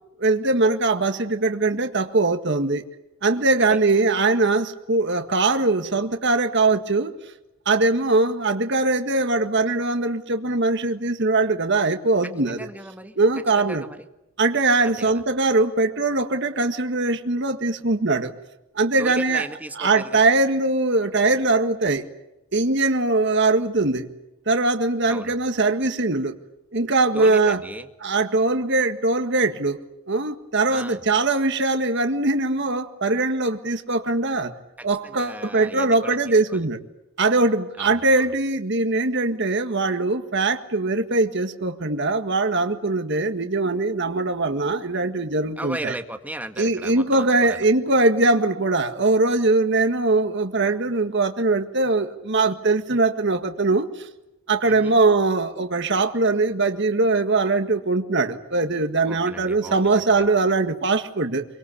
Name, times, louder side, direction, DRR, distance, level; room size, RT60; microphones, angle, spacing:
voice 1, 0.2-2.8 3.2-7.1 7.7-12.7 13.2-13.8 14.4-18.3 18.8-19.5 19.8-22.1 22.5-24.1 24.5-26.3 26.7-27.6 28.0-29.8 30.1-34.5 34.8-36.8 37.2-45.9 46.6-54.1 54.5-61.5, right 3 dB, 60° right, 7 dB, 1.7 m, -21 dB
voice 2, 12.5-13.1 13.6-14.1 14.8-15.1 19.0-20.2 25.1-25.4 27.1-27.9 30.7-31.0 34.8-36.7 37.8-38.3 45.6-47.7 54.6-55.0 59.0-60.2, right 1 dB, 10° right, 6 dB, 1.9 m, -36 dB
25.0 x 24.0 x 8.6 m, 0.91 s
head